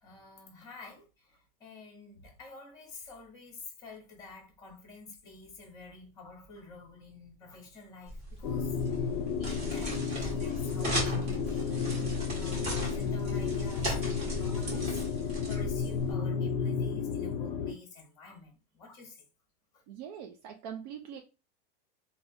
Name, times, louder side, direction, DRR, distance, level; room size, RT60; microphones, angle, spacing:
voice 1, 0.0-9.1 9.4-19.2 19.7-19.8, left 3 dB, 10° left, 1.0 m, -49 dB
sound 1, 8.1-16.1, right 1 dB, 20° right, 1.2 m, -38 dB
sound 2, 8.4-17.7, left 6 dB, 65° left, 0.5 m, -32 dB
voice 2, 19.9-21.2, right 8 dB, 45° right, 0.4 m, -42 dB
3.5 x 2.1 x 2.6 m
supercardioid pair, 160°, 30 cm